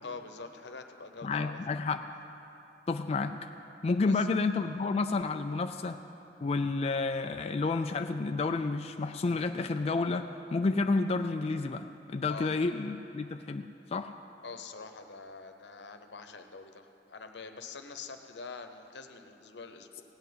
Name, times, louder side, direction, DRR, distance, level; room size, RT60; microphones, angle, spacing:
voice 1, 0.0-1.8 4.0-4.3 12.3-12.5 14.4-20.0, left 4 dB, 85° left, 7 dB, 0.9 m, -45 dB
voice 2, 1.2-2.0 2.9-3.5 3.8-6.0 6.4-14.1, left 3 dB, 35° left, 7 dB, 0.3 m, -30 dB
16.5 x 5.8 x 9.4 m, 2.8 s
head